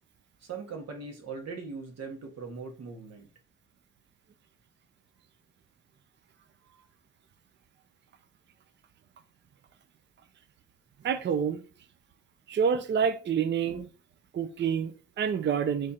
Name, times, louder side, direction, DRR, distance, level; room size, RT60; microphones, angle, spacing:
voice 1, 0.4-3.3, right 4 dB, 55° right, 1.4 m, -40 dB
voice 2, 11.0-11.6 12.5-13.9 14.3-15.9, right 7 dB, 35° right, 0.5 m, -28 dB
3.6 x 3.2 x 4.2 m
cardioid pair, 90°, 30 cm